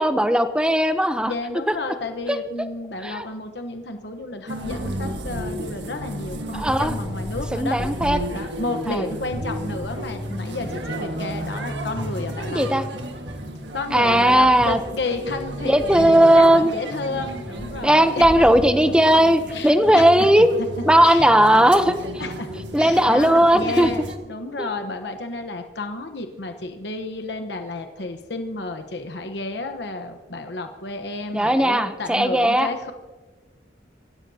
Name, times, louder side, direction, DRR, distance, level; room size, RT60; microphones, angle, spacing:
voice 1, 0.0-1.3 2.3-2.4 3.0-3.2 6.5-6.9 7.5-8.2 8.9-9.0 12.5-12.8 13.9-14.8 15.7-16.7 17.8-20.5 20.9-22.0 22.7-23.9 24.6-24.7 31.3-32.7, right 1 dB, 5° right, 9 dB, 0.7 m, -17 dB
voice 2, 1.3-7.8 8.3-12.6 13.7-18.5 18.8-18.9 19.5-20.7 21.0-21.3 22.2-22.5 22.8-32.9, left 2 dB, 75° left, 6 dB, 1.1 m, -31 dB
sound 1, 4.5-24.2, equal, 85° right, 1.7 m, -32 dB
25.5 x 16.0 x 2.8 m, 1.3 s
head